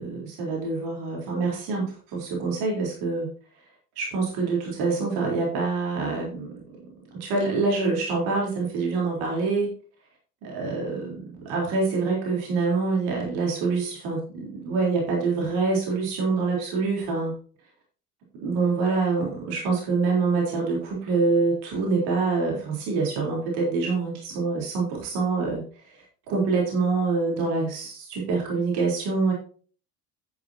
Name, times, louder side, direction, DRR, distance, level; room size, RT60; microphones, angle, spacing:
voice 1, 0.0-3.3 4.0-6.6 7.2-9.7 10.4-17.3 18.4-29.3, right 4 dB, 55° right, -2 dB, 4.0 m, -26 dB
10.5 x 9.4 x 2.9 m, 0.42 s
figure-of-eight pair, 65°, 47 cm